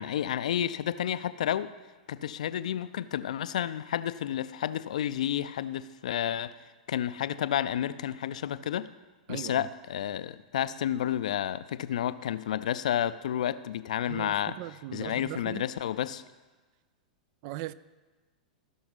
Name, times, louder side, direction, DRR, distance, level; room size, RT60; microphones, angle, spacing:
voice 1, 0.0-1.7 2.1-6.5 6.9-8.9 9.3-14.6 14.9-16.2, left 10 dB, 65° left, 0.4 m, -31 dB
voice 2, 9.3-9.7 14.1-15.6 17.4-17.7, right 15 dB, 45° right, 0.3 m, -39 dB
16.0 x 6.0 x 4.0 m
figure-of-eight pair, 100°, 4 cm